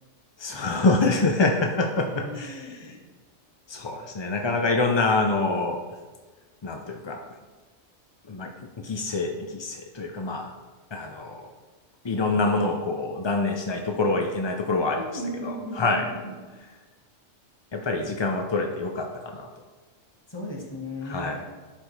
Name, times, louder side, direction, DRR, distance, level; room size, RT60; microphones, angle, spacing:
voice 1, 0.4-2.7 3.7-5.8 6.6-7.2 8.3-10.5 10.9-11.5 12.0-15.0 15.4-16.1 17.7-19.5 21.1-21.4, left 3 dB, 45° left, 2 dB, 0.3 m, -26 dB
voice 2, 2.2-3.0 14.9-16.3 20.3-21.5, equal, 20° left, -2 dB, 1.4 m, -36 dB
11.5 x 5.1 x 3.2 m, 1.3 s
omnidirectional pair, 1.3 m